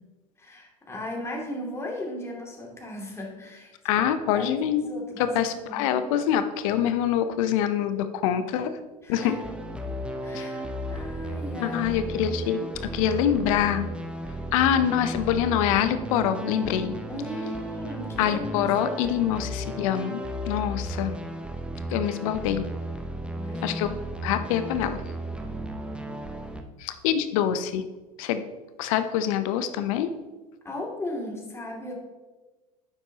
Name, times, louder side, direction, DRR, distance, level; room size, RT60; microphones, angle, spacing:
voice 1, 0.4-4.1 4.3-5.9 9.0-9.3 10.2-11.8 17.1-19.2 23.3-23.9 30.6-31.9, left 1 dB, 15° left, -1 dB, 2.5 m, -37 dB
voice 2, 3.8-4.9 5.2-8.8 9.1-9.4 10.3-10.5 11.6-13.9 14.5-16.9 18.2-21.2 21.9-22.6 23.6-23.9 24.2-25.0 26.8-27.8 28.2-28.4 28.8-30.1, left 9 dB, 65° left, 11 dB, 0.8 m, -25 dB
sound 1, 9.1-26.6, right 1 dB, 5° right, 0.9 m, -34 dB
9.9 x 7.4 x 2.9 m, 1.2 s
hypercardioid pair, 75°, 18 cm